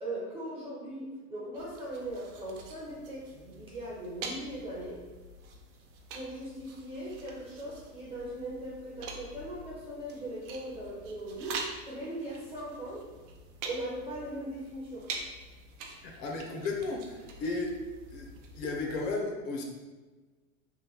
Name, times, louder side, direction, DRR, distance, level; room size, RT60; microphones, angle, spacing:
voice 1, 0.0-5.0 6.1-13.1 13.6-15.1, right 1 dB, 15° right, -6 dB, 0.4 m, -39 dB
sound 1, 1.5-19.1, right 3 dB, 60° right, 0.6 m, -45 dB
voice 2, 16.0-17.8 18.1-18.3 18.6-19.6, left 3 dB, 50° left, 1 dB, 0.6 m, -34 dB
3.1 x 2.1 x 3.4 m, 1.3 s
supercardioid pair, 140°, 41 cm